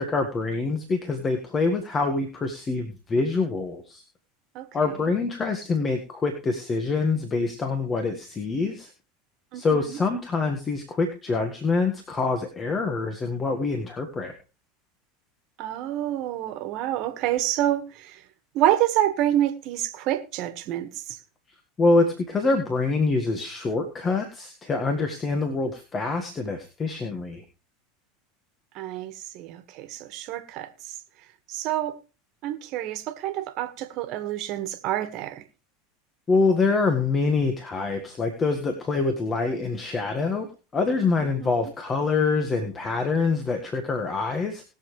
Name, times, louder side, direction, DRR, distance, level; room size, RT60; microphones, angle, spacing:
voice 1, 0.0-4.0 4.7-8.9 9.5-14.3 21.8-27.4 36.3-40.5 40.7-44.6, left 3 dB, 30° left, 1.7 m, -25 dB
voice 2, 9.5-10.0 15.6-18.2 18.5-21.2 28.7-30.9 31.5-32.0 32.4-35.4 41.2-41.7, right 13 dB, 55° right, 1.6 m, -28 dB
20.5 x 7.1 x 3.3 m
hypercardioid pair, 90°, 0 cm